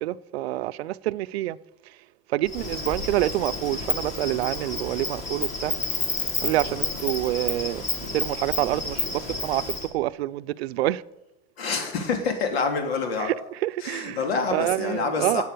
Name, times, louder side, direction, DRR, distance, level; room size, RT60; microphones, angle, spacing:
voice 1, 0.0-1.6 2.3-5.7 6.4-7.8 8.1-9.6 9.9-11.0 13.2-15.4, right 15 dB, 85° right, 0.6 m, -27 dB
Insect, 2.5-9.9, left 3 dB, 25° left, 1.8 m, -30 dB
voice 2, 11.6-13.3 13.8-15.4, left 4 dB, 75° left, 3.0 m, -27 dB
11.5 x 8.4 x 6.7 m
supercardioid pair, 180°, 31 cm